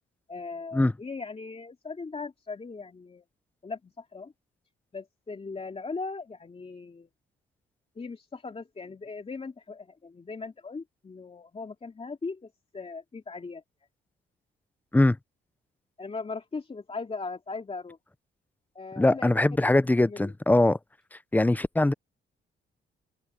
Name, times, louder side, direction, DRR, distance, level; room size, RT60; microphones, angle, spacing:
voice 1, 0.3-3.2 3.6-4.3 4.9-7.1 8.0-13.6 16.0-18.0 18.7-19.7 20.0-20.3, left 4 dB, 30° left, 3.1 m, -39 dB
voice 2, 19.0-20.8 21.3-21.9, left 2 dB, 10° left, 0.6 m, -22 dB
open air
cardioid pair, 95°, 20 cm